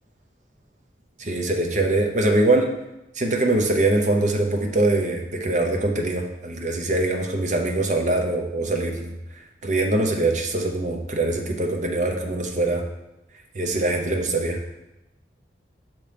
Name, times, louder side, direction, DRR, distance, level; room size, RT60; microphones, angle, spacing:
voice 1, 1.2-2.7 3.2-9.1 9.6-12.8 13.5-14.6, right 2 dB, 40° right, 2 dB, 0.7 m, -23 dB
6.5 x 2.9 x 5.1 m, 0.92 s
head